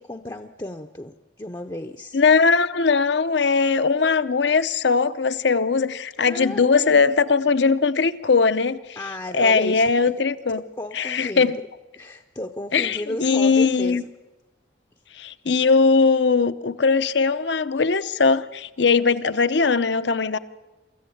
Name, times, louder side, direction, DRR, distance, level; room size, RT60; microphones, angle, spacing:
voice 1, 0.0-2.2 6.2-7.1 9.0-9.9 10.8-11.5 12.0-14.0, left 1 dB, 20° left, 0.6 m, -33 dB
voice 2, 2.1-8.8 9.3-10.6 10.9-11.6 12.7-14.0 15.2-20.4, left 4 dB, 70° left, 0.7 m, -20 dB
24.0 x 14.5 x 8.6 m
head